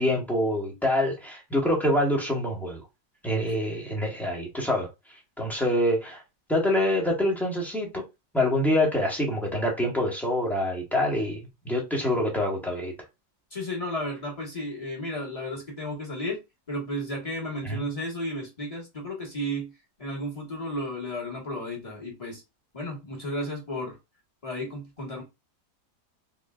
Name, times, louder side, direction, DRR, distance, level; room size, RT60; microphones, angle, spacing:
voice 1, 0.0-2.8 3.2-4.9 5.4-6.2 6.5-8.0 8.3-11.4 11.6-12.9 17.6-17.8, left 1 dB, ahead, 1.0 m, -25 dB
voice 2, 13.5-16.4 16.7-19.7 20.0-22.4 22.7-24.0 24.4-25.2, equal, 20° left, 1.5 m, -33 dB
3.6 x 3.5 x 2.4 m
omnidirectional pair, 1.8 m